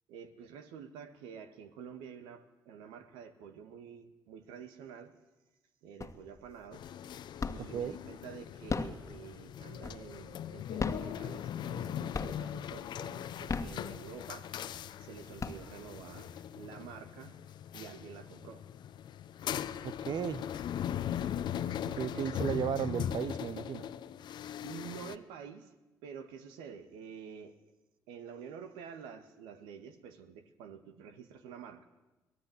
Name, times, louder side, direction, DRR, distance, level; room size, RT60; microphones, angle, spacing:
voice 1, 0.1-5.2 5.8-6.9 7.5-14.6 15.0-17.4 17.7-18.6 22.1-22.5 24.6-25.7 26.0-27.6 28.1-31.9, right 7 dB, 75° right, 9 dB, 1.7 m, -49 dB
sound 1, 6.0-6.5 6.9-7.9 8.5-10.3 10.7-11.8 12.1-12.7 13.3-14.4 14.9-15.0 15.2-16.1, left 4 dB, 35° left, 1.7 m, -37 dB
sound 2, 6.7-25.2, left 10 dB, 60° left, 0.9 m, -40 dB
voice 2, 7.6-8.0 19.8-20.4 21.9-23.8, right 9 dB, 60° right, 17 dB, 1.0 m, -35 dB
23.5 x 18.5 x 8.0 m, 1.1 s
hypercardioid pair, 45°, 8 cm